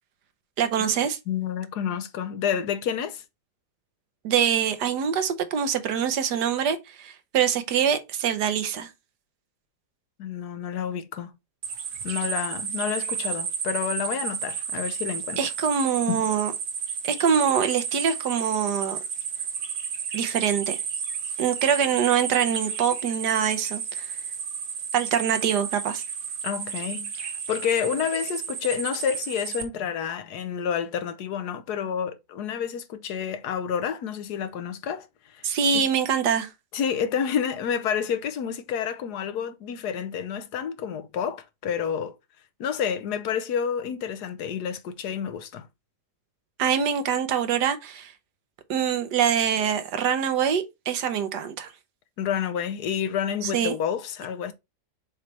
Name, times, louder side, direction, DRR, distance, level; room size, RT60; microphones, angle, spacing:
voice 1, 0.6-1.2 4.2-8.9 15.4-16.5 17.0-19.0 20.1-20.8 21.4-24.1 24.9-26.0 35.4-36.5 46.6-48.1 48.7-51.7 53.4-53.7, right 8 dB, 75° right, 1.5 m, -24 dB
voice 2, 1.3-3.2 10.2-11.3 12.0-15.5 16.1-16.3 26.4-35.6 36.7-42.1 42.6-45.7 52.2-54.5, left 8 dB, 75° left, 1.3 m, -29 dB
sound 1, 11.6-29.6, right 6 dB, 50° right, 1.2 m, -32 dB
7.1 x 3.2 x 4.1 m
omnidirectional pair, 1.8 m